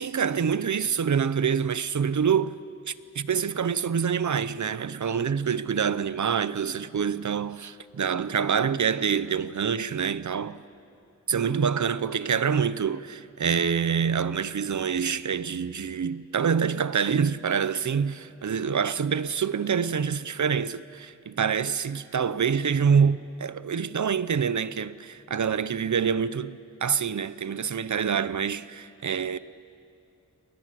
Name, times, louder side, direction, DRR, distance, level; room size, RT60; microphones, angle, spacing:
voice 1, 0.0-2.6 2.9-10.6 11.3-29.4, right 7 dB, 70° right, 0.7 m, -26 dB
29.0 x 21.0 x 7.6 m
wide cardioid pair, 80°, 30 cm